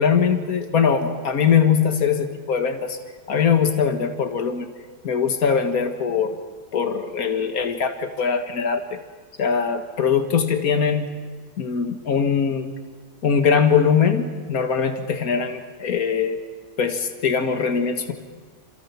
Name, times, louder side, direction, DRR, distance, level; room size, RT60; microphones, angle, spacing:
voice 1, 0.0-3.0 3.3-4.7 5.0-6.4 6.7-9.0 9.4-11.1 11.6-12.7 13.2-16.4 16.8-18.1, left 6 dB, 70° left, 6 dB, 2.1 m, -21 dB
27.5 x 27.0 x 5.9 m, 1.5 s
omnidirectional pair, 1.6 m